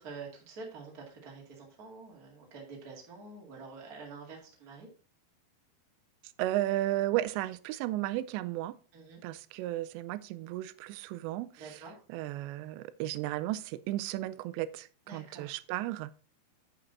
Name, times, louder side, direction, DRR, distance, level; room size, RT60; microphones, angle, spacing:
voice 1, 0.0-4.9 8.9-9.2 11.6-12.0 15.1-15.6, right 4 dB, 30° right, 1.7 m, -47 dB
voice 2, 6.4-8.7 9.2-11.8 12.1-16.2, right 15 dB, 90° right, 2.8 m, -34 dB
9.2 x 5.9 x 4.0 m
omnidirectional pair, 4.9 m